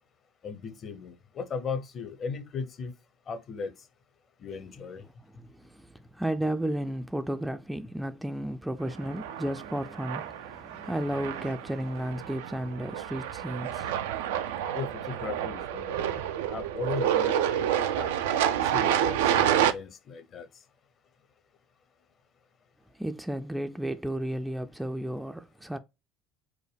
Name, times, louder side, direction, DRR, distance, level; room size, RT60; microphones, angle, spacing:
voice 1, 0.4-2.9 3.3-3.7 4.4-5.0 14.7-16.2 16.5-18.1 18.7-20.5, left 5 dB, 40° left, 0.8 m, -37 dB
voice 2, 5.4-14.5 22.9-25.8, right 1 dB, 5° right, 0.4 m, -33 dB
sound 1, 9.0-19.7, right 10 dB, 70° right, 0.3 m, -29 dB
4.7 x 2.1 x 3.3 m
figure-of-eight pair, 60°, 0 cm